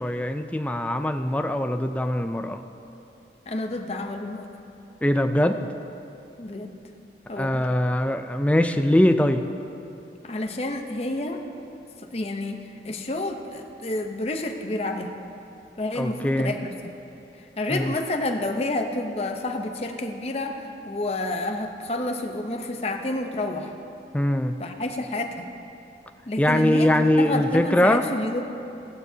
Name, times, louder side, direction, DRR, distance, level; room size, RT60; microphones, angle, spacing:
voice 1, 0.0-2.6 5.0-5.7 7.4-9.4 15.9-16.5 17.7-17.9 24.1-24.6 26.4-28.0, left 1 dB, 10° left, 7 dB, 0.3 m, -22 dB
voice 2, 3.5-4.5 6.4-6.7 7.3-7.7 10.2-11.4 12.1-12.6 12.8-15.1 15.8-16.9 17.4-23.7 24.6-25.3 26.3-26.9 27.2-28.4, left 2 dB, 35° left, 4 dB, 0.7 m, -29 dB
16.0 x 13.5 x 2.8 m, 2.8 s
head